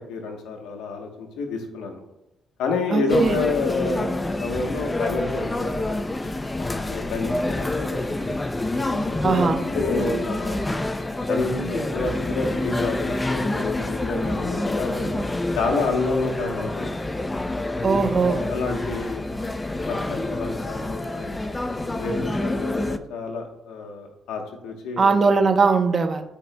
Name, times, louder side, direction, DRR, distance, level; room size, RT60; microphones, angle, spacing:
voice 1, 0.1-2.0 2.6-6.0 6.8-8.0 8.7-10.8 11.3-15.2 15.6-16.9 18.2-19.4 19.9-21.3 21.9-25.5, left 3 dB, 90° left, 3 dB, 1.0 m, -29 dB
voice 2, 2.9-3.4 9.2-9.6 17.8-18.4 25.0-26.2, right 4 dB, 40° right, 6 dB, 0.8 m, -20 dB
sound 1, 3.1-23.0, left 2 dB, 15° left, 0.4 m, -27 dB
12.0 x 5.0 x 2.2 m, 0.89 s
cardioid pair, 90°, 0 cm